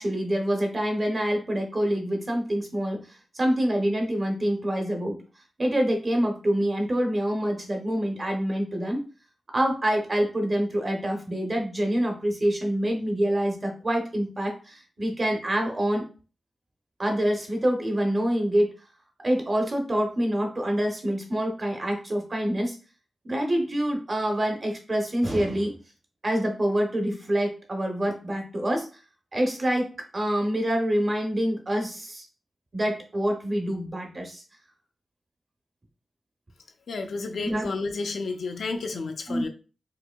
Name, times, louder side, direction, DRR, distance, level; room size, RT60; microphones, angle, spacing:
voice 1, 0.0-3.0 3.3-5.2 5.6-9.0 9.5-16.0 17.0-18.7 19.2-22.8 23.2-25.7 26.2-28.9 29.3-32.3 32.7-34.4 37.4-37.7 39.3-39.5, equal, 30° right, 2 dB, 0.8 m, -26 dB
voice 2, 36.9-39.5, left 3 dB, 70° left, 5 dB, 0.5 m, -31 dB
4.7 x 2.7 x 2.2 m, 0.35 s
wide cardioid pair, 170°, 0 cm